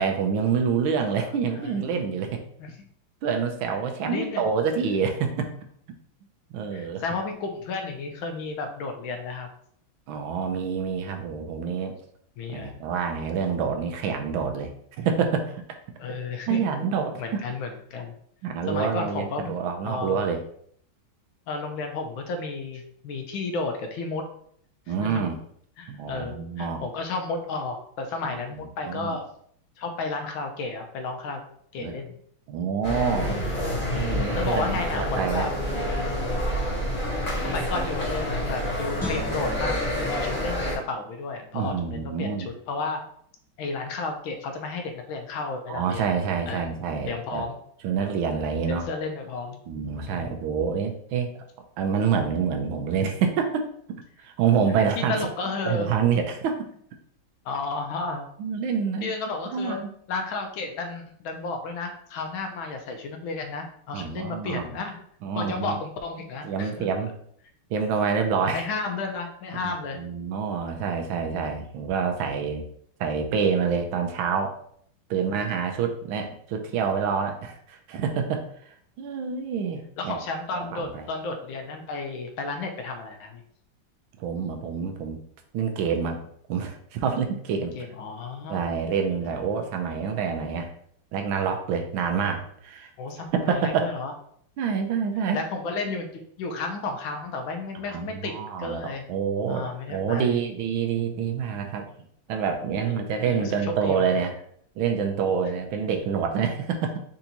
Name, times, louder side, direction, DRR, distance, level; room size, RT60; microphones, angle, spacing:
voice 1, 0.0-2.4 3.2-5.5 6.5-7.0 10.1-12.0 12.5-14.7 15.0-15.6 16.5-17.4 18.4-20.4 24.9-25.4 25.9-26.8 28.9-29.2 31.8-32.0 32.5-33.6 34.0-34.7 34.9-35.5 41.5-42.5 45.7-47.4 47.8-48.8 49.7-51.3 51.8-55.3 55.7-56.7 58.4-59.1 59.5-59.9 63.9-64.7 65.2-65.8 66.4-67.1 67.7-68.6 69.6-72.6 73.0-74.5 75.1-78.4 79.0-80.2 80.5-81.0 84.2-85.2 85.5-86.2 86.5-87.7 88.5-90.7 91.1-92.9 93.5-93.9 94.6-95.4 97.9-101.8 102.3-104.3 104.8-107.0, right 6 dB, 85° right, 4 dB, 1.5 m, -27 dB
voice 2, 1.3-2.0 2.6-2.9 4.1-4.5 6.7-9.5 12.4-12.7 16.0-16.6 17.2-18.1 18.7-19.5 19.8-20.2 21.5-24.2 24.9-25.2 25.8-29.3 29.8-31.4 31.7-32.1 34.3-35.5 37.4-43.0 43.6-46.1 46.5-46.7 47.1-47.5 48.7-49.6 49.9-50.3 55.1-55.9 57.4-58.2 59.0-59.8 60.1-65.0 65.3-66.9 68.4-70.0 80.0-83.4 87.8-88.6 89.2-89.4 93.0-94.1 95.3-98.3 98.6-99.0 99.5-100.4 102.8-104.0, left 3 dB, 80° left, 4 dB, 1.5 m, -32 dB
sound 1, 32.8-40.8, left 1 dB, 30° left, 1.4 m, -28 dB
Guitar, 39.0-42.1 42.5-42.7, equal, 10° left, 0.4 m, -40 dB
4.6 x 2.9 x 3.9 m, 0.64 s
omnidirectional pair, 2.2 m